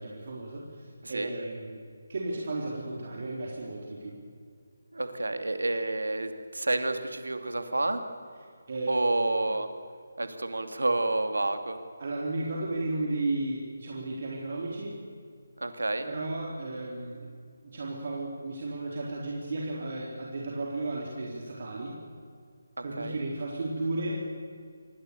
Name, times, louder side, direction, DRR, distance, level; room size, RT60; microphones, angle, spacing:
voice 1, 0.0-1.8 2.1-4.1 8.7-8.9 12.0-15.0 16.1-17.3 17.6-22.0 22.8-24.3, right 2 dB, 45° right, -3 dB, 4.1 m, -34 dB
voice 2, 4.9-8.0 8.9-9.7 10.2-11.8 15.6-16.1 22.8-23.2, right 2 dB, 70° right, 8 dB, 2.8 m, -29 dB
27.0 x 22.0 x 6.9 m, 2.2 s
figure-of-eight pair, 150°, 0 cm